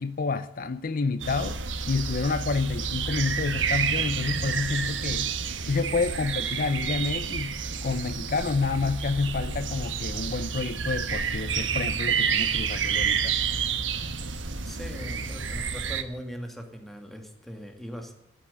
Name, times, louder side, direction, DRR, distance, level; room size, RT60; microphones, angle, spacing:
voice 1, 0.0-5.3 5.6-13.4, left 4 dB, 50° left, 0.6 m, -29 dB
sound 1, 1.2-16.0, right 6 dB, 85° right, 1.3 m, -29 dB
Mechanical fan, 9.7-16.2, right 2 dB, 35° left, 5.4 m, -47 dB
voice 2, 14.7-18.1, equal, ahead, 2.2 m, -40 dB
14.0 x 8.9 x 8.2 m
head